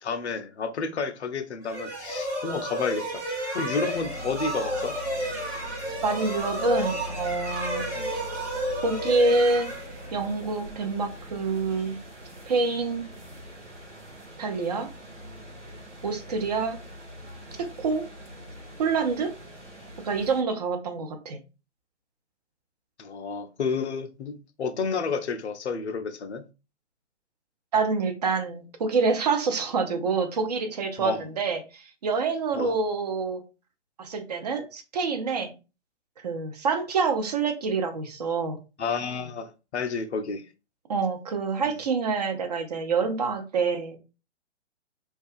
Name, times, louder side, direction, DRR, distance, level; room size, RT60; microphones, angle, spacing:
voice 1, 0.0-3.2 3.5-5.0 7.9-8.1 23.0-26.4 31.0-31.3 32.5-32.8 38.8-40.5, left 5 dB, 70° left, 0.5 m, -31 dB
sound 1, 1.6-10.4, right 1 dB, 10° right, 0.8 m, -32 dB
sound 2, 3.9-20.4, left 1 dB, 85° right, 0.8 m, -42 dB
voice 2, 6.0-7.9 8.8-9.7 10.1-12.0 12.5-13.1 14.4-14.9 16.0-16.8 17.6-18.1 18.8-19.3 20.0-21.4 27.7-33.4 34.0-35.5 36.2-38.6 40.9-44.0, right 4 dB, 35° right, 0.5 m, -26 dB
2.3 x 2.2 x 2.4 m
figure-of-eight pair, 120°, 35 cm